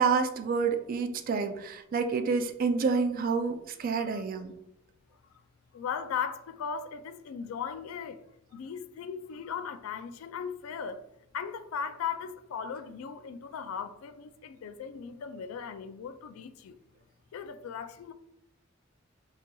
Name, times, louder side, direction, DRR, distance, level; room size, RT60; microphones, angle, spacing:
voice 1, 0.0-4.5, right 5 dB, 45° right, 0.3 m, -28 dB
voice 2, 5.7-8.2 8.5-11.1 11.3-16.8 17.3-18.1, left 7 dB, 90° left, 0.3 m, -37 dB
3.9 x 2.9 x 2.2 m
head